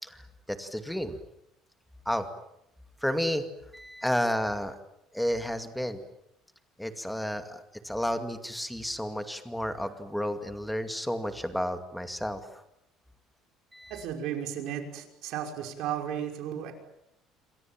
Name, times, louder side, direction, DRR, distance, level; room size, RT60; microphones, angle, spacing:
voice 1, 0.0-1.2 2.1-2.3 3.0-3.5 3.7-4.8 5.1-6.0 6.8-12.6 13.7-14.0, equal, ahead, 7 dB, 2.3 m, -32 dB
voice 2, 13.9-16.7, right 9 dB, 65° right, 4 dB, 5.7 m, -34 dB
28.5 x 25.0 x 7.6 m, 0.81 s
cardioid pair, 160°, 0 cm